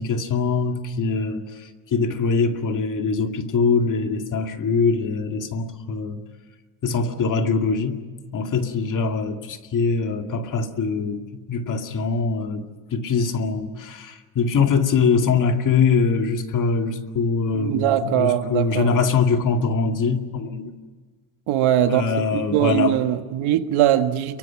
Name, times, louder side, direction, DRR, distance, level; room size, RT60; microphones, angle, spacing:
voice 1, 0.0-6.2 6.8-8.0 8.3-11.2 11.5-20.7 21.9-22.9, left 5 dB, 40° left, 2.3 m, -23 dB
voice 2, 17.5-19.1 21.5-24.4, right 11 dB, 70° right, 1.7 m, -21 dB
29.5 x 23.5 x 6.0 m
cardioid pair, 145°, 49 cm